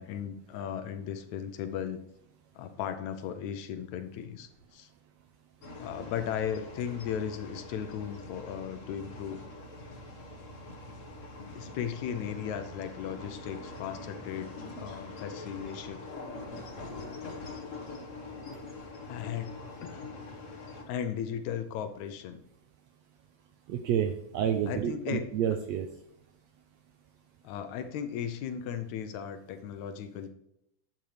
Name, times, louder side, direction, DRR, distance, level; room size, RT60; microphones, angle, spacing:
voice 1, 0.0-2.0 2.6-4.9 5.8-9.4 11.5-16.0 18.8-20.0 20.9-22.4 24.7-25.3 27.4-30.3, left 8 dB, 75° left, 9 dB, 1.9 m, -36 dB
sound 1, 5.6-20.8, left 2 dB, 55° left, 0.8 m, -44 dB
voice 2, 23.7-25.9, right 9 dB, 80° right, 7 dB, 1.6 m, -29 dB
11.5 x 9.0 x 3.3 m, 0.78 s
omnidirectional pair, 3.6 m